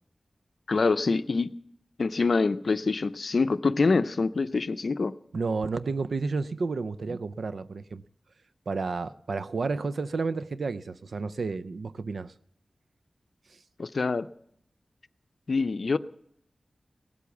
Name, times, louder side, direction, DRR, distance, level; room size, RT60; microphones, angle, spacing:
voice 1, 0.7-1.5 2.0-5.1 13.8-14.3 15.5-16.0, left 4 dB, 70° left, 0.5 m, -25 dB
voice 2, 5.3-8.0 8.7-12.3 13.5-13.6, right 4 dB, 80° right, 0.5 m, -31 dB
18.5 x 8.4 x 7.1 m
cardioid pair, 45°, 0 cm